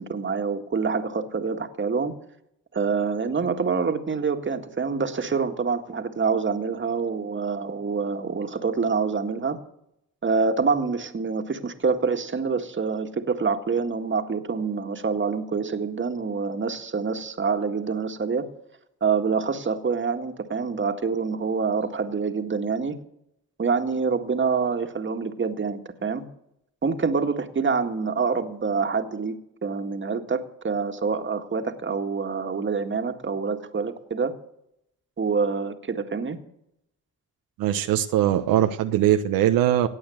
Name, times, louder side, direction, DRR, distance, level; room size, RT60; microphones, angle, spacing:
voice 1, 0.0-2.1 2.7-9.6 10.2-18.5 19.0-23.0 23.6-26.3 26.8-34.3 35.2-36.4, right 5 dB, 35° right, 7 dB, 1.9 m, -26 dB
voice 2, 37.6-39.9, right 11 dB, 80° right, 7 dB, 1.0 m, -21 dB
17.5 x 8.6 x 7.9 m, 0.77 s
supercardioid pair, 70°, 34 cm